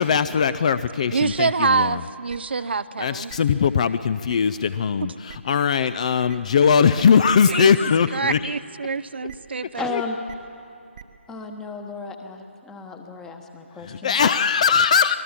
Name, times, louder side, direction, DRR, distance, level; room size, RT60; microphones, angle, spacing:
voice 1, 0.0-2.0 3.0-8.5 9.9-10.0 13.8-15.2, left 6 dB, 30° left, 14 dB, 0.5 m, -20 dB
voice 2, 1.1-3.3 7.5-9.9, right 4 dB, 55° right, 14 dB, 0.5 m, -25 dB
sound 1, 1.3-1.4 2.3-2.4 3.3-3.4 4.3-4.4 5.3-5.4 6.3-6.4 7.3-7.4 8.3-8.4 9.3-9.4 10.3-10.4 10.9-11.0, right 8 dB, 35° right, 1.0 m, -41 dB
voice 3, 9.7-10.2 11.3-14.3, left 4 dB, 5° left, 5 dB, 1.1 m, -34 dB
25.5 x 19.5 x 7.3 m, 2.6 s
figure-of-eight pair, 150°, 7 cm